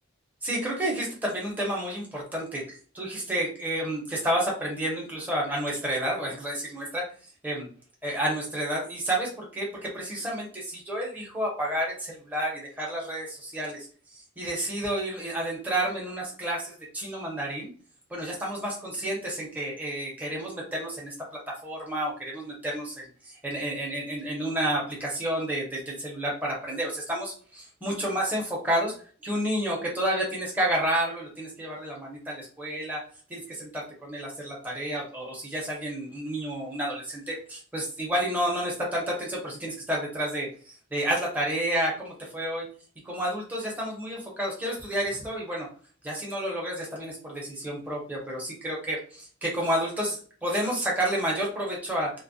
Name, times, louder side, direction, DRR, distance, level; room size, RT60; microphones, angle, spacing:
voice 1, 0.4-7.0 7.4-7.7 8.0-13.8 14.1-17.7 18.1-21.1 21.6-22.9 23.2-28.9 29.2-33.0 33.3-42.6 43.0-45.7 46.0-52.1, right 1 dB, 10° right, -3 dB, 0.8 m, -30 dB
2.2 x 2.1 x 2.6 m, 0.41 s
head